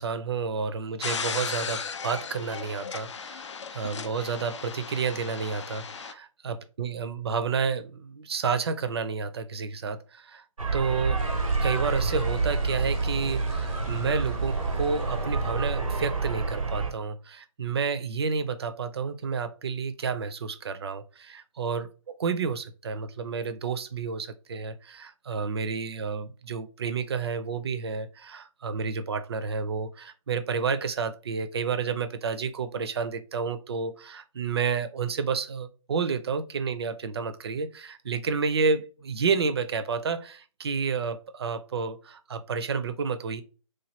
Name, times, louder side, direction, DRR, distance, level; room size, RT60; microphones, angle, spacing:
voice 1, 0.0-10.4 10.7-11.2 11.6-21.9 22.2-43.4, right 5 dB, 50° right, 10 dB, 0.5 m, -30 dB
sound 1, 1.0-6.1, left 6 dB, 60° left, 0.4 m, -36 dB
sound 2, 10.6-16.9, right 3 dB, 85° right, 0.7 m, -28 dB
sound 3, 11.2-16.2, left 2 dB, 25° left, 0.8 m, -45 dB
3.2 x 2.2 x 2.9 m, 0.36 s
figure-of-eight pair, 145°, 17 cm